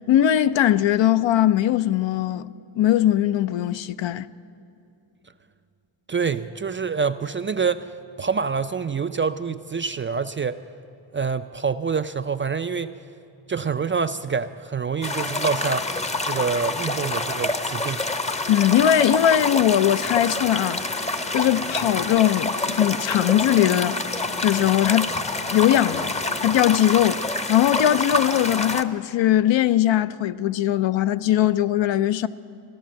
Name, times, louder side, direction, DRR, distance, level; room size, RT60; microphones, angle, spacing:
voice 1, 0.1-2.4 2.8-4.3 18.5-24.0 24.4-25.1 25.5-26.1 26.4-27.2 27.5-32.3, left 11 dB, 65° left, 0.6 m, -20 dB
voice 2, 6.1-7.9 8.2-10.6 11.1-12.9 13.5-15.9 16.2-18.0, right 5 dB, 25° right, 0.3 m, -26 dB
sound 1, 15.0-28.8, left 2 dB, 15° left, 0.7 m, -27 dB
15.0 x 12.5 x 7.5 m
cardioid pair, 65°, 50 cm